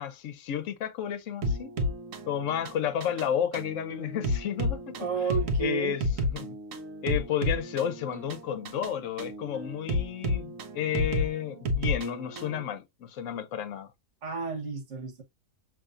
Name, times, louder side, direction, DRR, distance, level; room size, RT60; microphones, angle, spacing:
voice 1, 0.0-1.8 2.3-5.3 5.6-6.6 7.0-13.9, left 9 dB, 70° left, 1.0 m, -32 dB
sound 1, 1.4-12.6, left 1 dB, 80° right, 1.2 m, -32 dB
voice 2, 5.0-6.0 14.2-15.2, right 5 dB, 65° right, 1.5 m, -31 dB
6.8 x 3.0 x 2.4 m
omnidirectional pair, 1.4 m